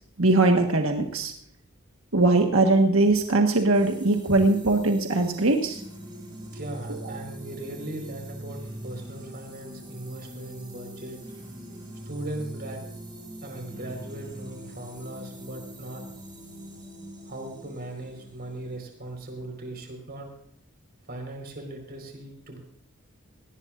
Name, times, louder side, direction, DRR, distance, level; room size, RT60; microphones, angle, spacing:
voice 1, 0.2-1.3 2.1-5.8, right 2 dB, 70° right, 3 dB, 1.6 m, -21 dB
sound 1, 3.7-19.5, right 1 dB, 20° right, 5.0 m, -42 dB
voice 2, 6.5-11.2 12.0-12.8 13.4-16.0 17.2-20.3 21.1-22.6, right 1 dB, 50° right, 3 dB, 4.6 m, -38 dB
19.0 x 18.0 x 2.6 m, 0.67 s
head